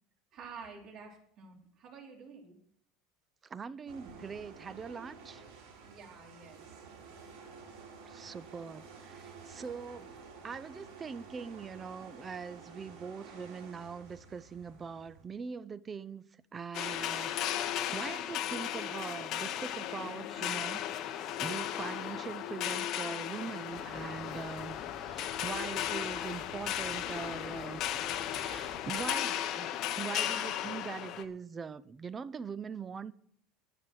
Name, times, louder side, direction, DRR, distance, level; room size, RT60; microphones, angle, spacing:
voice 1, 0.3-2.6 5.8-6.8, right 5 dB, 45° right, 3.8 m, -50 dB
voice 2, 3.5-5.4 8.1-10.1 10.4-16.2 16.5-27.8 28.3-29.7 30.0-33.1, right 6 dB, 25° right, 0.5 m, -42 dB
sound 1, 3.9-15.2, right 5 dB, 70° right, 4.5 m, -51 dB
sound 2, 16.7-31.2, left 11 dB, 50° left, 1.0 m, -35 dB
sound 3, 23.7-29.0, left 1 dB, 5° left, 2.6 m, -53 dB
10.5 x 10.0 x 6.3 m
supercardioid pair, 135°, 0 cm